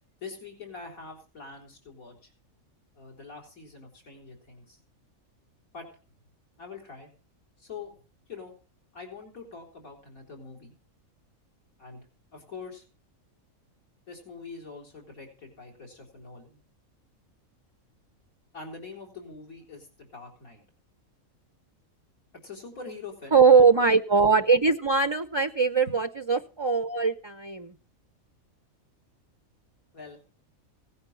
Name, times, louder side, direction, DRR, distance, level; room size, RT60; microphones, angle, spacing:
voice 1, 0.2-2.3 2.9-4.8 5.7-5.9 6.6-7.1 7.6-7.9 8.3-8.5 8.9-10.7 11.8-12.1 12.3-12.8 14.1-16.6 18.5-20.6 22.4-23.8 25.9-26.0 29.9-30.2, left 4 dB, 75° left, 0 dB, 4.5 m, -44 dB
voice 2, 23.3-27.7, right 5 dB, 30° right, 11 dB, 0.5 m, -21 dB
18.0 x 9.5 x 5.6 m, 0.36 s
omnidirectional pair, 1.5 m